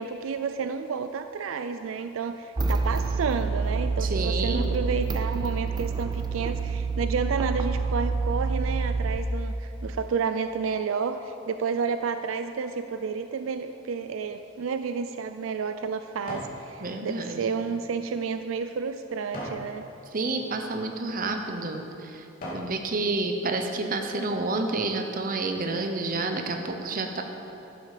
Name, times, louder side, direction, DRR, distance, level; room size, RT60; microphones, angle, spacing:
voice 1, 0.0-19.8, right 5 dB, 85° right, 9 dB, 0.4 m, -31 dB
sound 1, 2.6-9.2, right 4 dB, 20° right, 0.5 m, -27 dB
voice 2, 4.0-4.7 16.8-17.4 20.1-22.2 22.5-27.2, right 3 dB, 45° right, 5 dB, 0.9 m, -29 dB
sound 2, 15.0-16.6 17.1-19.7 20.3-20.5 21.2-21.4 21.9-22.8 23.2-23.3, equal, 45° left, 2.6 m, -41 dB
12.0 x 8.5 x 5.0 m, 2.9 s
head